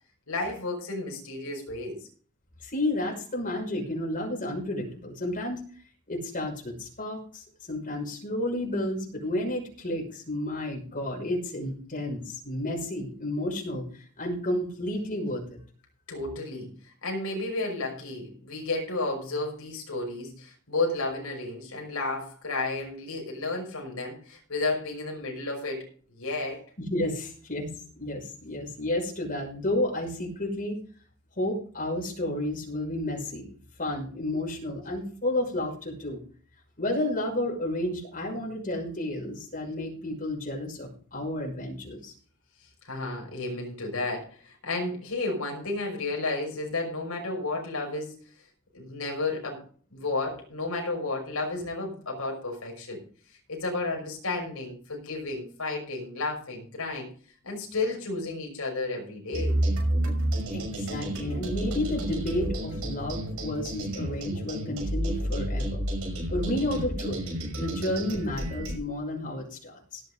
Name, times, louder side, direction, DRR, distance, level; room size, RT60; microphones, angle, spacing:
voice 1, 0.3-2.0 16.1-16.7 17.0-26.6 42.8-48.2 48.7-49.6 49.9-53.0 53.5-57.1 57.4-59.6, left 2 dB, 70° left, 1 dB, 5.8 m, -32 dB
voice 2, 2.6-5.6 6.1-15.6 26.9-27.7 28.0-30.8 31.4-33.5 33.8-36.2 36.8-42.1 60.5-65.8 66.3-70.0, left 1 dB, 40° left, -1 dB, 6.0 m, -31 dB
sound 1, 59.3-68.8, right 1 dB, 70° right, 5.9 m, -30 dB
17.0 x 9.3 x 3.9 m, 0.43 s
head